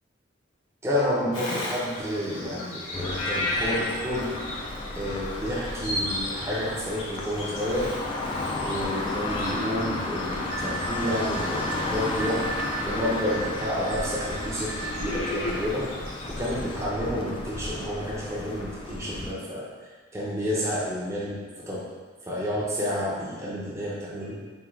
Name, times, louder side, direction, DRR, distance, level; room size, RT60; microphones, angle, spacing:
voice 1, 0.8-4.3 4.9-7.9 8.6-12.5 12.8-15.9 16.3-19.7 20.1-21.9 22.3-24.4, equal, 15° right, -7 dB, 0.6 m, -30 dB
Bird vocalization bird call bird song, 1.3-16.8, left 1 dB, 80° left, 0.7 m, -36 dB
sound 1, 2.9-19.3, left 2 dB, 25° left, 0.3 m, -33 dB
sound 2, 10.5-15.4, right 4 dB, 80° right, 0.6 m, -37 dB
3.6 x 2.3 x 4.4 m, 1.4 s
head